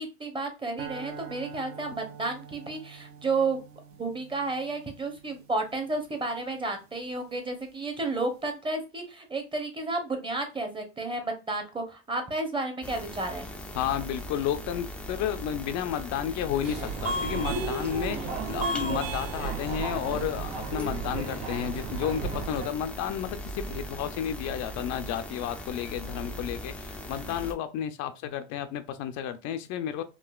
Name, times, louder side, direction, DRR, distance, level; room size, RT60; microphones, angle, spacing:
voice 1, 0.0-3.6 4.0-13.5, right 3 dB, 15° right, 0.8 m, -32 dB
sound 1, 0.8-7.1, right 7 dB, 45° right, 0.5 m, -47 dB
sound 2, 12.8-27.5, equal, 5° left, 0.4 m, -39 dB
voice 2, 13.8-30.0, left 10 dB, 60° left, 0.5 m, -32 dB
Subway metro underground, 16.6-22.7, right 3 dB, 90° right, 1.5 m, -33 dB
3.8 x 2.4 x 2.3 m
cardioid pair, 125°, 31 cm